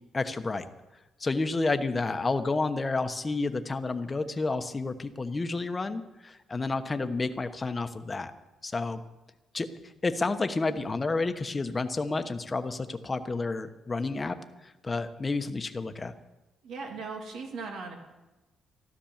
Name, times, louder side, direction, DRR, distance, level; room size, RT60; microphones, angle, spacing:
voice 1, 0.1-0.7 1.2-8.3 8.6-9.0 9.5-16.1, left 3 dB, 25° left, 9 dB, 1.1 m, -30 dB
voice 2, 16.6-17.9, right 4 dB, 80° right, 2 dB, 2.9 m, -38 dB
13.5 x 12.0 x 7.3 m, 1.1 s
cardioid pair, 90°, 0 cm